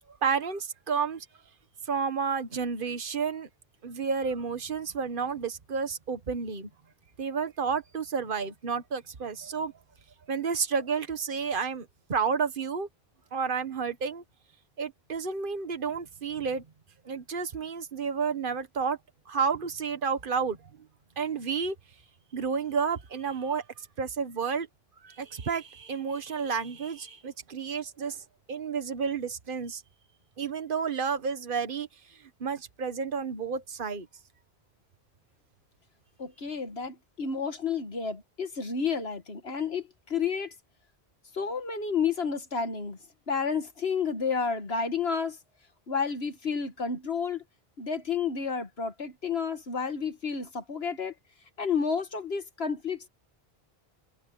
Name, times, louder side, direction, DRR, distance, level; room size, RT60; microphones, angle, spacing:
voice 1, 0.2-1.2 1.9-3.5 3.8-6.7 7.2-9.7 10.3-12.9 13.3-14.2 14.8-16.6 17.0-19.0 19.3-20.6 21.2-21.7 22.3-24.7 25.0-29.8 30.4-34.1, right 5 dB, 55° right, 1.5 m, -31 dB
voice 2, 36.2-40.5 41.3-43.0 43.3-45.4 45.9-47.4 47.8-51.1 51.6-53.1, left 6 dB, 80° left, 2.1 m, -31 dB
omnidirectional pair, 1.0 m